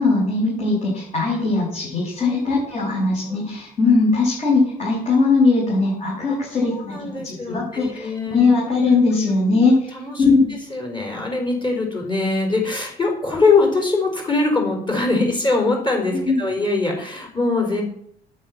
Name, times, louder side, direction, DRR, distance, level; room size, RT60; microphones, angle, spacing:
voice 1, 0.0-9.9 10.2-10.5 16.1-16.5, left 3 dB, 45° left, -5 dB, 6.9 m, -19 dB
voice 2, 2.2-2.6 3.3-3.4 6.3-8.4 9.5-9.6 9.9-10.2 10.7-17.8, left 3 dB, 30° left, 1 dB, 5.0 m, -22 dB
9.7 x 9.5 x 9.1 m, 0.66 s
cardioid pair, 110°, 17 cm